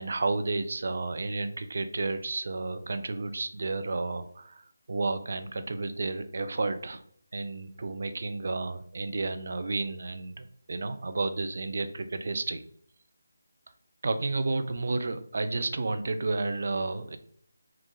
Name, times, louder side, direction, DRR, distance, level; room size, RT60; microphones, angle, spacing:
voice 1, 0.0-7.0 7.3-12.6 14.0-17.2, right 3 dB, 50° right, 9 dB, 0.3 m, -31 dB
3.5 x 2.4 x 2.9 m, 0.63 s
figure-of-eight pair, 155°, 0 cm